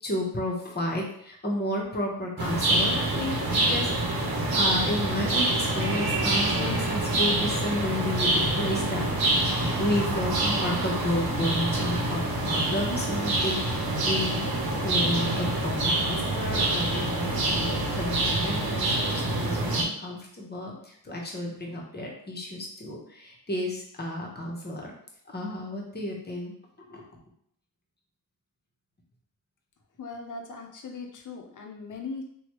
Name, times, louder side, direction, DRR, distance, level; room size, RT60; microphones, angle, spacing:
voice 1, 0.0-3.9 4.2-9.4 9.8-14.5 14.8-24.9 25.3-26.5 26.9-27.0, left 1 dB, 25° left, -1 dB, 0.9 m, -32 dB
sound 1, 2.4-19.8, right 2 dB, 80° right, 0.8 m, -26 dB
voice 2, 30.0-32.2, left 4 dB, 55° left, 2 dB, 0.7 m, -39 dB
3.1 x 2.3 x 3.0 m, 0.69 s
cardioid pair, 65°, 36 cm